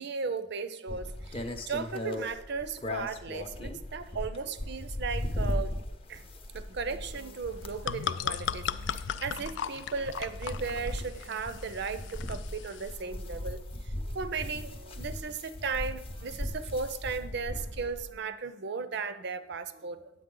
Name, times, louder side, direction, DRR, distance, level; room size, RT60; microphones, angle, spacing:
voice 1, 0.0-5.7 6.1-6.3 6.5-20.1, right 5 dB, 60° right, 13 dB, 0.6 m, -36 dB
sound 1, 0.9-18.1, left 1 dB, 30° left, 0.6 m, -38 dB
sound 2, 7.5-13.0, left 8 dB, 65° left, 0.3 m, -37 dB
9.4 x 8.4 x 3.8 m, 0.91 s
head